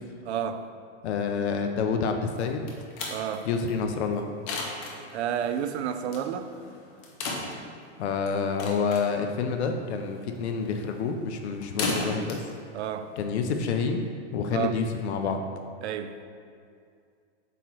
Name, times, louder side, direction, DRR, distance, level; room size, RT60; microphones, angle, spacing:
voice 1, 0.3-0.7 3.1-3.5 5.1-6.5 12.7-13.2 14.5-14.7 15.8-16.1, right 9 dB, 65° right, 0.6 m, -30 dB
voice 2, 1.0-2.6 3.4-4.2 8.0-12.4 13.2-15.4, left 5 dB, 70° left, 0.7 m, -28 dB
sound 1, 2.4-13.8, left 3 dB, 15° left, 0.4 m, -37 dB
7.9 x 3.1 x 6.0 m
supercardioid pair, 165°, 35 cm